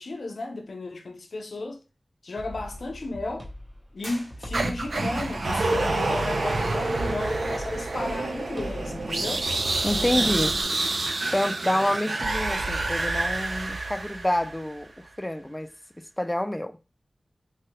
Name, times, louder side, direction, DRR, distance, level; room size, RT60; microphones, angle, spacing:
voice 1, 0.0-1.8 2.2-3.5 3.9-9.4, left 2 dB, 85° left, 0.5 m, -34 dB
sound 1, 2.4-10.6, left 1 dB, 15° right, 0.8 m, -40 dB
sound 2, 4.0-5.0, right 1 dB, 50° right, 1.4 m, -44 dB
sound 3, 4.5-14.7, right 2 dB, 80° right, 0.4 m, -28 dB
voice 2, 9.8-10.6 11.3-15.7 16.0-16.8, left 1 dB, 15° left, 0.3 m, -28 dB
3.2 x 2.2 x 2.9 m
wide cardioid pair, 90°, 0 cm